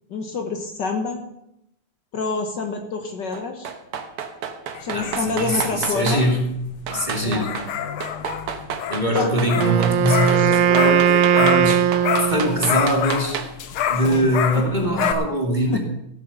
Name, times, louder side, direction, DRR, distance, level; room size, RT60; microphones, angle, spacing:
voice 1, 0.1-1.2 2.1-3.7 4.8-6.2 7.2-7.5 9.1-9.3 10.3-10.5 14.0-14.3 14.6-14.8 15.7-15.8, left 4 dB, 55° left, 5 dB, 1.7 m, -27 dB
sound 1, 3.3-6.2 6.9-7.7 8.0-13.7 14.0-14.1, right 7 dB, 90° right, 2.1 m, -31 dB
sound 2, 4.7-11.8 12.0-15.1, left 9 dB, 75° left, 1.7 m, -28 dB
voice 2, 4.9-6.5 6.9-7.6 8.9-11.8 12.2-13.4 13.9-15.8, equal, 20° right, 1 dB, 2.1 m, -22 dB
Wind instrument woodwind instrument, 9.5-12.8, right 9 dB, 70° right, 0.8 m, -19 dB
14.5 x 8.5 x 6.8 m, 0.80 s
omnidirectional pair, 2.4 m